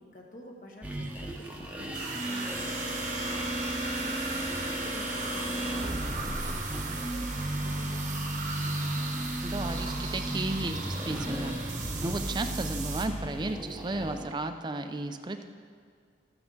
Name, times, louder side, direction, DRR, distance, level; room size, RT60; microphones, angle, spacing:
voice 1, 0.0-3.2 3.6-8.8, left 1 dB, 45° left, 0 dB, 1.3 m, -50 dB
sound 1, 0.8-14.3, right 1 dB, 10° right, 0.8 m, -34 dB
sound 2, 1.9-13.1, right 4 dB, 45° right, 1.0 m, -38 dB
sound 3, 7.0-12.1, right 1 dB, 75° right, 0.9 m, -49 dB
voice 2, 9.4-11.6 12.0-15.4, right 2 dB, 25° right, 8 dB, 0.4 m, -34 dB
13.5 x 8.4 x 3.9 m, 2.1 s
head